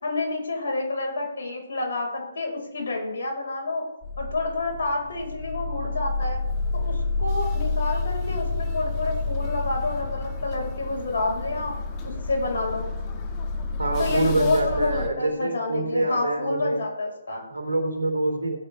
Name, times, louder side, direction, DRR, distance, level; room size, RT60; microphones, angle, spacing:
voice 1, 0.0-3.8 4.2-6.4 6.7-11.7 12.0-12.9 14.0-17.4, left 2 dB, 70° left, 0 dB, 5.0 m, -28 dB
sound 1, 4.0-15.1, left 3 dB, 25° left, 1.8 m, -29 dB
voice 2, 13.8-16.8 17.5-18.6, right 2 dB, 85° right, 2 dB, 3.1 m, -26 dB
16.0 x 9.0 x 3.4 m, 0.88 s
hypercardioid pair, 145°, 0 cm